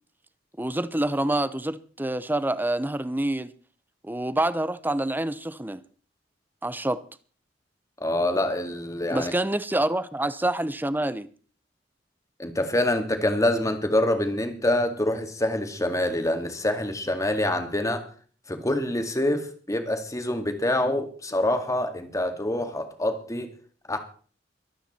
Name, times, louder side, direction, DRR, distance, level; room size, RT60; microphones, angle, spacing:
voice 1, 0.6-3.5 4.0-5.8 6.6-7.0 9.1-11.3, right 1 dB, 10° right, 0.8 m, -27 dB
voice 2, 8.0-9.3 12.4-18.0 18.5-23.5 23.9-24.0, left 1 dB, 20° left, 2.1 m, -26 dB
23.5 x 9.1 x 4.4 m
head